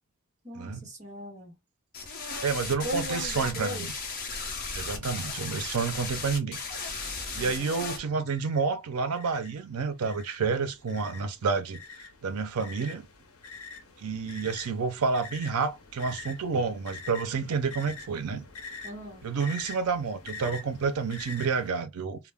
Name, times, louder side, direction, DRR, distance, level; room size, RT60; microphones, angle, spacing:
voice 1, 0.4-1.5 2.8-3.9 7.3-7.7 18.8-19.2, equal, 30° right, 1.0 m, -38 dB
sound 1, 1.9-8.0, left 4 dB, 40° left, 0.7 m, -36 dB
voice 2, 2.4-3.9 4.7-6.6 6.9-7.1 7.3-11.8 12.2-13.1 14.0-18.4 19.2-22.2, right 5 dB, 85° right, 0.5 m, -29 dB
sound 2, 7.6-7.7 8.3-8.6 9.1-21.7, left 4 dB, 80° left, 0.7 m, -45 dB
2.2 x 2.0 x 3.3 m
head